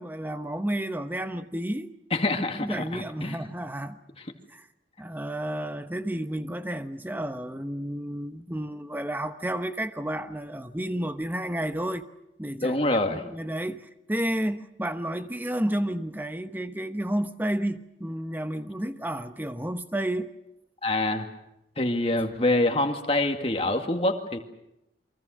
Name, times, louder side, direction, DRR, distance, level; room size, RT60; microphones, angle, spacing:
voice 1, 0.0-1.9 2.6-4.0 4.5-4.7 5.0-12.0 12.4-12.8 13.1-20.3, right 1 dB, 10° right, 1.0 m, -31 dB
voice 2, 2.1-3.4 12.6-13.2 20.8-21.3 21.8-24.4, left 2 dB, 35° left, 2.1 m, -25 dB
28.5 x 24.0 x 6.5 m
head